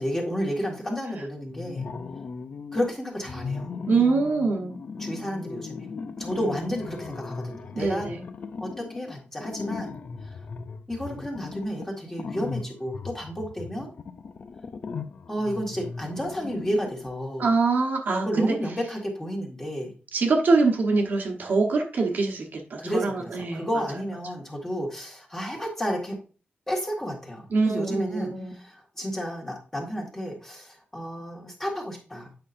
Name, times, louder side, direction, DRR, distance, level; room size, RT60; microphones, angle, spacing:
voice 1, 0.0-1.8 2.7-3.7 5.0-5.9 6.2-8.1 8.6-9.9 10.2-10.4 10.9-13.9 15.3-17.6 18.2-19.9 22.8-26.2 26.7-32.3, equal, 10° left, -1 dB, 1.9 m, -31 dB
sound 1, 1.5-2.9 3.2-17.1, left 5 dB, 45° left, 0.6 m, -38 dB
voice 2, 3.9-4.7 7.8-8.2 17.4-18.6 20.1-23.6 27.5-28.5, right 3 dB, 55° right, 2 dB, 1.1 m, -24 dB
8.7 x 5.6 x 2.6 m, 0.35 s
wide cardioid pair, 160°, 4 cm